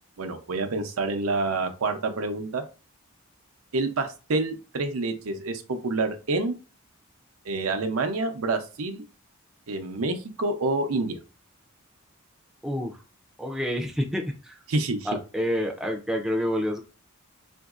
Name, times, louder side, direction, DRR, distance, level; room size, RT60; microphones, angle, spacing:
voice 1, 0.2-2.6 3.7-6.6 7.4-9.0 9.7-11.2 14.7-15.1, right 3 dB, 80° right, 6 dB, 0.6 m, -27 dB
voice 2, 12.6-13.0 13.4-14.6 15.0-16.8, equal, ahead, 1 dB, 0.5 m, -28 dB
3.8 x 2.6 x 2.4 m, 0.32 s
head